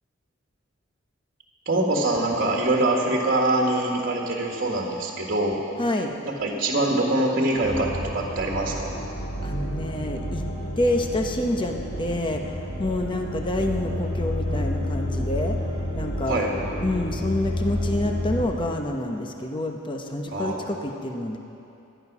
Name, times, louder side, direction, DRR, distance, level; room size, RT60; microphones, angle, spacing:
voice 1, 1.6-5.6 6.2-8.9 16.3-16.5 20.3-20.6, right 2 dB, 45° right, -1 dB, 1.7 m, -24 dB
voice 2, 5.8-6.1 9.4-10.4 10.8-15.6 16.0-16.5 16.8-21.4, left 1 dB, 25° left, 3 dB, 0.9 m, -27 dB
sound 1, 7.6-18.4, equal, 60° left, 3.3 m, -30 dB
15.0 x 11.0 x 6.1 m, 2.8 s
head